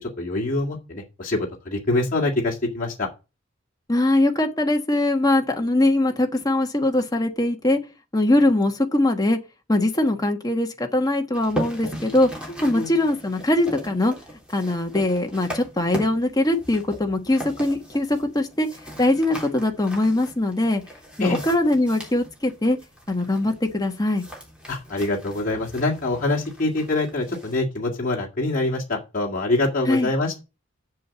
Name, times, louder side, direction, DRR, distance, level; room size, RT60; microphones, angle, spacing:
voice 1, 0.0-3.1 12.5-12.9 21.2-21.4 24.7-30.4, left 2 dB, 45° left, 2.0 m, -25 dB
voice 2, 3.9-7.8 8.1-9.4 9.7-12.3 12.6-14.1 14.5-18.7 19.0-20.8 21.2-22.8 23.1-24.2 29.9-30.1, left 1 dB, 20° left, 1.4 m, -21 dB
sound 1, 11.3-27.6, right 1 dB, 5° right, 3.6 m, -38 dB
7.5 x 7.3 x 7.0 m
head